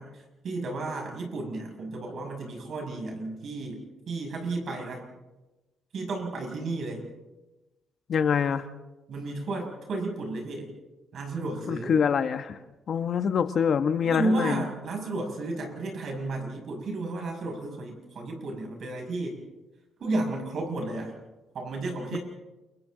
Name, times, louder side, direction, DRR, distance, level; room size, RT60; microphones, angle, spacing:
voice 1, 0.0-3.8 4.1-5.0 5.9-7.0 9.1-10.7 11.1-12.0 14.0-19.4 20.0-21.1 21.5-22.2, right 2 dB, 60° right, 2 dB, 6.3 m, -32 dB
voice 2, 8.1-8.6 11.7-12.6 12.9-14.6 22.1-22.2, left 7 dB, 55° left, 10 dB, 1.1 m, -25 dB
29.0 x 23.5 x 3.9 m, 1.1 s
cardioid pair, 90°, 0 cm